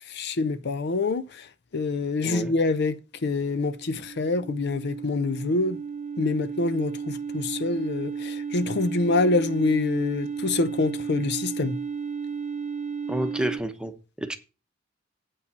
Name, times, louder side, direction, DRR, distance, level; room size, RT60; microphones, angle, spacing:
voice 1, 0.1-1.5 1.7-5.8 6.2-11.8, left 3 dB, 60° left, 0.6 m, -26 dB
voice 2, 2.2-2.6 13.1-14.4, right 1 dB, 5° right, 0.9 m, -30 dB
sound 1, 3.4-13.6, right 6 dB, 35° right, 0.8 m, -34 dB
8.2 x 5.5 x 6.7 m
head